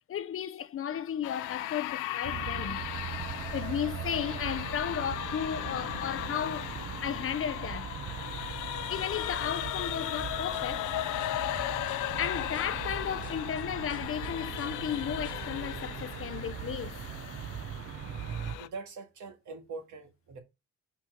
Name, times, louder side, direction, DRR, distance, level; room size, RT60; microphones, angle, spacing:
voice 1, 0.1-2.9 3.5-7.9 8.9-10.9 12.2-17.0, left 9 dB, 45° left, 0.6 m, -34 dB
sound 1, 1.2-18.7, left 14 dB, 90° left, 0.6 m, -37 dB
sound 2, 2.2-18.5, right 8 dB, 50° right, 0.9 m, -40 dB
sound 3, 10.2-15.5, right 2 dB, 25° right, 3.0 m, -51 dB
voice 2, 18.6-20.4, right 4 dB, 75° right, 2.0 m, -44 dB
5.7 x 4.4 x 5.9 m
cardioid pair, 90°, 30 cm